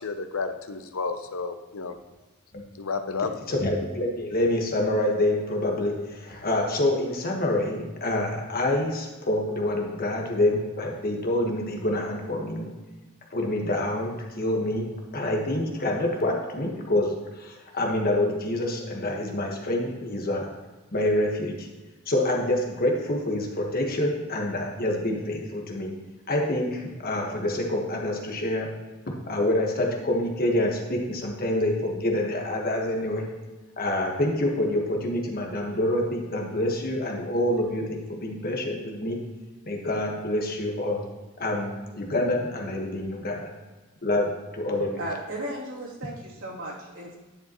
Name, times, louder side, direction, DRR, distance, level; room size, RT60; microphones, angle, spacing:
voice 1, 0.0-1.9 2.8-3.4, left 4 dB, 70° left, 9 dB, 0.7 m, -31 dB
voice 2, 3.5-12.7 13.3-14.9 15.1-20.5 20.9-21.7 22.1-25.9 26.3-28.7 29.3-33.3 33.8-39.2 39.7-41.0 41.4-43.5 44.0-45.0, left 1 dB, 45° left, 1 dB, 1.4 m, -27 dB
voice 3, 45.0-47.2, right 1 dB, 85° right, -6 dB, 2.8 m, -35 dB
10.5 x 6.8 x 3.0 m, 1.2 s
head